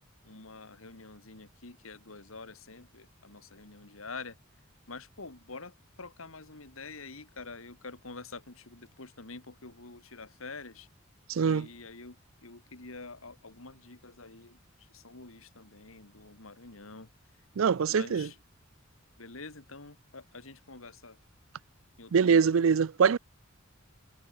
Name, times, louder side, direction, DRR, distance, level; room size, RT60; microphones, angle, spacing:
voice 1, 0.2-4.4 4.9-10.9 11.4-17.1 17.9-18.4 19.2-21.2 22.0-22.5, left 3 dB, 80° left, 2.6 m, -47 dB
voice 2, 11.3-11.7 17.6-18.3 22.1-23.2, right 6 dB, 70° right, 0.4 m, -23 dB
head